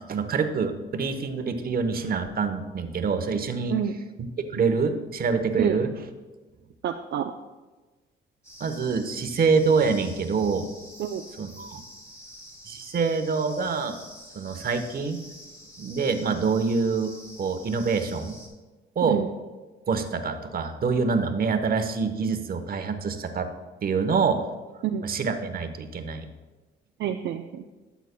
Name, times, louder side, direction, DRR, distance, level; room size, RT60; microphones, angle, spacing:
voice 1, 0.1-3.7 4.5-5.9 8.6-10.7 11.4-11.8 12.6-14.0 14.3-15.2 15.8-18.4 19.0-19.2 19.9-23.5 23.8-24.4 25.0-26.2, right 5 dB, 50° right, 8 dB, 1.0 m, -26 dB
voice 2, 6.8-7.3 11.0-11.2 19.0-19.3 24.8-25.0 27.0-27.6, right 9 dB, 65° right, 5 dB, 0.5 m, -28 dB
sound 1, 8.4-18.5, equal, 15° left, 2.8 m, -47 dB
12.5 x 8.1 x 2.2 m, 1.2 s
cardioid pair, 90°, 20 cm